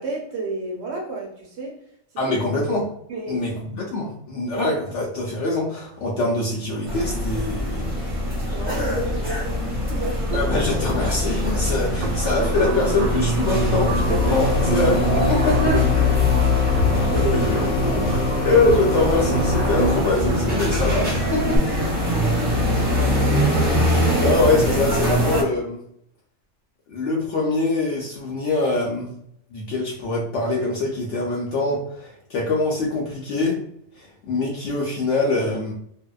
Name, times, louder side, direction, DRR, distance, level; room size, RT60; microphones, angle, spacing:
voice 1, 0.0-1.8 2.3-2.4 3.1-3.5 8.5-10.2 11.9-12.1 14.1-14.5 17.1-18.2, right 2 dB, 60° right, 0 dB, 0.8 m, -31 dB
voice 2, 2.2-2.9 3.3-7.9 10.3-16.1 17.5-17.6 18.4-21.9 23.8-25.8 26.9-29.1 29.5-33.6 33.9-35.7, left 2 dB, 65° left, -2 dB, 0.8 m, -24 dB
sound 1, 6.9-25.4, left 1 dB, 10° right, 0.7 m, -23 dB
sound 2, 10.3-21.6, right 3 dB, 90° right, 1.0 m, -28 dB
sound 3, 14.2-20.0, left 4 dB, 85° left, 1.2 m, -27 dB
2.7 x 2.1 x 2.2 m, 0.71 s
omnidirectional pair, 1.5 m